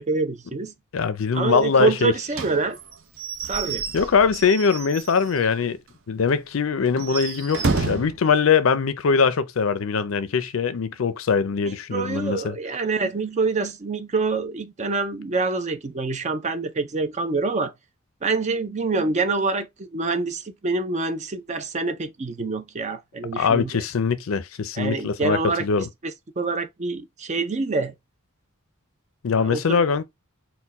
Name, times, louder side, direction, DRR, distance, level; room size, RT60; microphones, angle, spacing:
voice 1, 0.0-0.7 1.3-2.8 3.4-3.8 11.7-17.7 18.2-23.8 24.8-25.6 26.0-27.9 29.4-29.8, right 3 dB, 35° right, 0.5 m, -26 dB
voice 2, 0.9-2.1 3.9-5.8 6.1-12.6 23.4-25.9 29.2-30.0, left 5 dB, 65° left, 0.5 m, -22 dB
Slam / Squeak / Wood, 2.3-5.5 5.9-6.0 6.3-6.4 6.9-8.2, right 3 dB, 65° right, 0.8 m, -30 dB
4.3 x 2.2 x 4.0 m
head